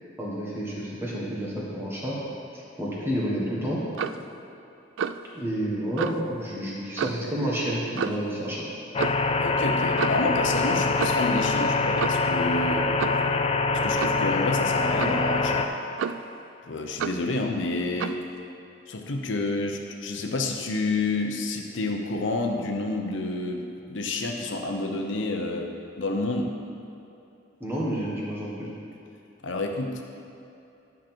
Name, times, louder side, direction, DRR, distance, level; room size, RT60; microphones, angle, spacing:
voice 1, 0.2-2.1 2.5-3.8 5.3-8.6 27.6-28.7, equal, 15° right, -6 dB, 1.6 m, -30 dB
Clock, 3.9-4.3 5.0-5.3 6.0-6.2 7.0-7.3 8.0-8.3 9.0-9.2 10.0-10.3 11.0-11.3 12.0-12.3 13.0-13.3 14.0-14.3 15.0-15.3 16.0-16.4 17.0-17.3 18.0-18.2, right 7 dB, 85° right, 0.3 m, -30 dB
sound 1, 8.9-15.7, left 3 dB, 30° left, 0.3 m, -24 dB
voice 2, 9.4-12.9 13.8-15.7 16.7-18.2 18.9-25.7 26.0-26.5 29.4-30.0, left 2 dB, 80° left, 2 dB, 0.8 m, -29 dB
10.0 x 6.0 x 4.5 m, 2.8 s
head